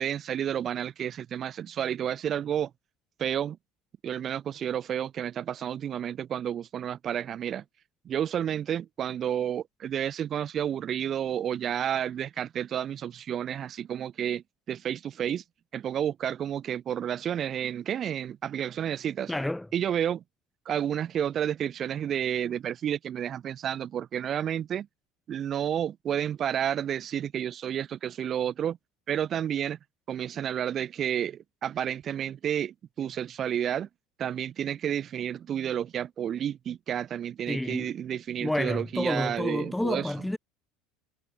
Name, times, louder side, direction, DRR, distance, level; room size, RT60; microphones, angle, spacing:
voice 1, 0.0-2.7 3.2-3.6 4.0-7.6 8.0-15.4 15.7-19.3 19.7-20.2 20.7-24.9 25.3-28.8 29.1-29.8 30.1-33.9 34.2-40.1, right 9 dB, 40° right, 0.7 m, -31 dB
voice 2, 19.3-19.7 37.5-37.9 38.4-40.4, left 1 dB, 5° left, 3.2 m, -29 dB
figure-of-eight pair, 70°, 0 cm